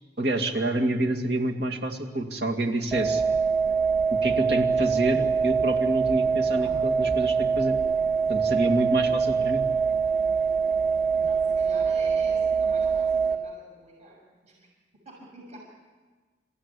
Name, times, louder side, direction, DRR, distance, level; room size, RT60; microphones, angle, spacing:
voice 1, 0.2-3.2 4.1-7.8 8.3-9.7, right 1 dB, 60° right, 2 dB, 2.4 m, -27 dB
sound 1, 2.9-13.3, right 5 dB, 5° right, 1.9 m, -24 dB
voice 2, 11.2-14.7 14.9-15.6, right 2 dB, 40° right, -2 dB, 6.7 m, -48 dB
28.0 x 15.5 x 9.9 m, 1.4 s
head